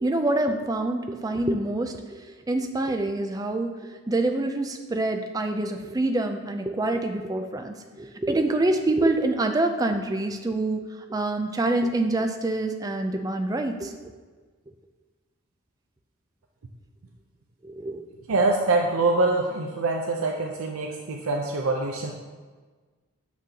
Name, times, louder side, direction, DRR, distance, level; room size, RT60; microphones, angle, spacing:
voice 1, 0.0-2.0 2.5-3.7 4.1-13.9 17.6-18.0, right 2 dB, 15° right, 6 dB, 0.3 m, -26 dB
voice 2, 18.3-22.1, right 2 dB, 75° right, 0 dB, 0.5 m, -24 dB
6.8 x 6.0 x 2.8 m, 1.4 s
head